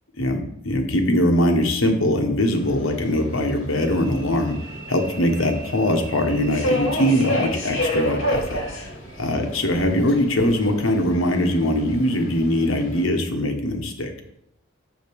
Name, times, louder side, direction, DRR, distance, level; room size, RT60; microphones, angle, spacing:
voice 1, 0.2-8.9 9.2-14.1, left 1 dB, 85° left, 3 dB, 1.3 m, -22 dB
Subway metro underground, 2.5-13.0, equal, 70° left, 2.6 m, -30 dB
7.3 x 5.2 x 5.3 m, 0.75 s
head